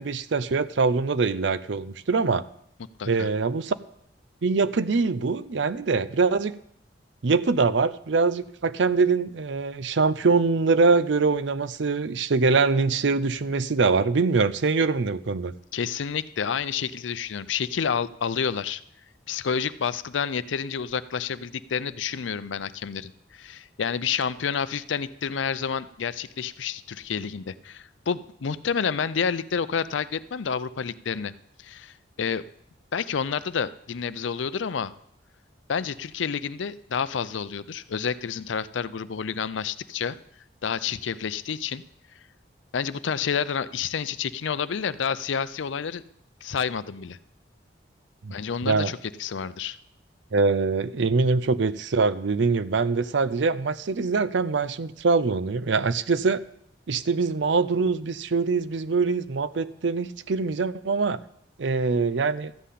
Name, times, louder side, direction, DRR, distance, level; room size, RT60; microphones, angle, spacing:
voice 1, 0.0-2.4 3.1-3.8 4.4-6.5 7.2-15.5 48.2-48.3 48.6-48.9 50.3-56.4 56.9-61.2 61.6-62.5, right 4 dB, 75° right, 15 dB, 0.6 m, -23 dB
voice 2, 15.7-18.8 19.3-31.3 31.6-32.4 32.9-34.9 35.7-40.2 40.6-41.8 42.7-46.0 46.4-47.2 48.3-49.8, left 6 dB, 85° left, 15 dB, 0.5 m, -29 dB
13.0 x 5.7 x 8.4 m, 0.70 s
head